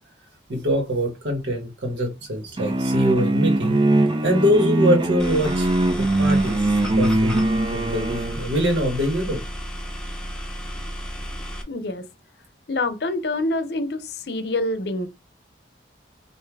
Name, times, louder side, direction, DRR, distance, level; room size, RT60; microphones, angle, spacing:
voice 1, 0.5-3.8 4.2-5.7 6.0-9.4, equal, 80° right, 1.6 m, -24 dB
sound 1, 2.6-8.4, right 2 dB, 25° right, 0.4 m, -21 dB
sound 2, 5.2-11.6, equal, 5° left, 0.7 m, -32 dB
voice 2, 11.7-12.1 12.7-15.1, left 2 dB, 60° left, 0.6 m, -26 dB
5.6 x 2.6 x 3.4 m
head